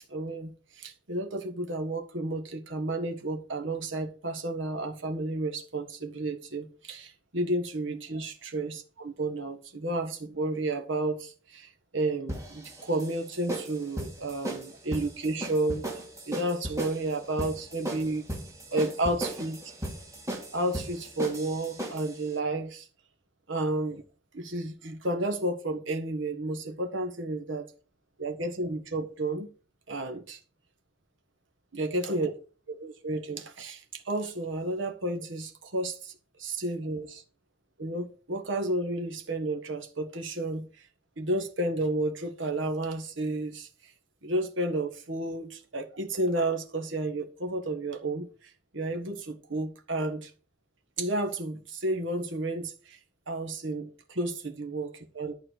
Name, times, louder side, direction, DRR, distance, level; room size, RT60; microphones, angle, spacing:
voice 1, 0.0-15.8 16.3-18.2 18.7-19.6 20.5-22.9 23.5-24.0 24.3-27.7 28.2-29.5 29.9-30.4 31.7-32.3 32.7-36.1 36.4-37.2 37.8-40.7 41.2-43.7 44.2-50.3 51.0-53.0 53.3-55.3, right 2 dB, 75° right, 1.5 m, -31 dB
sound 1, 12.3-22.2, right 1 dB, 15° right, 2.3 m, -36 dB
12.0 x 4.3 x 8.2 m
head